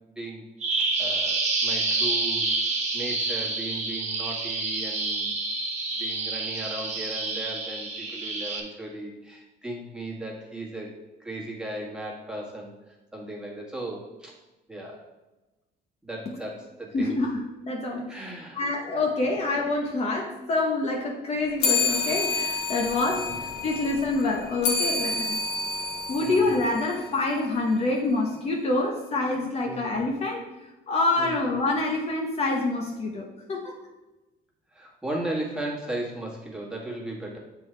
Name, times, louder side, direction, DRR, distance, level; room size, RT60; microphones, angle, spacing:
Bird vocalization bird call bird song, 0.6-8.6, right 3 dB, 40° right, 1.4 m, -28 dB
voice 1, 0.7-5.3 6.0-14.3 14.7-15.0 16.0-17.2 18.1-18.6 18.9-19.0 23.0-23.4 26.2-26.5 29.6-29.8 31.2-31.4 34.7-37.4, right 1 dB, 5° right, -4 dB, 1.8 m, -36 dB
voice 2, 16.9-25.4 26.1-33.8, left 2 dB, 40° left, 0 dB, 0.9 m, -27 dB
sound 1, 21.6-27.4, left 4 dB, 80° left, 1.3 m, -29 dB
7.6 x 3.8 x 4.5 m, 1.1 s
cardioid pair, 110°, 17 cm